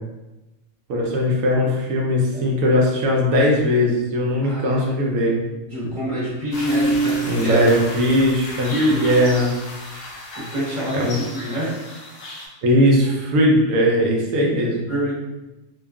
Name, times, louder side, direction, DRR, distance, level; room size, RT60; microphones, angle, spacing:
voice 1, 0.9-5.4 7.3-8.7 9.0-9.5 10.9-11.2 12.6-14.8, equal, 85° right, -1 dB, 1.0 m, -19 dB
voice 2, 4.4-4.9 5.7-7.6 8.7-9.1 10.3-11.8 14.9-15.1, right 1 dB, 40° right, -11 dB, 1.4 m, -26 dB
sound 1, 6.5-12.4, right 1 dB, 60° left, 0.7 m, -29 dB
2.8 x 2.3 x 2.2 m, 1.0 s
omnidirectional pair, 1.4 m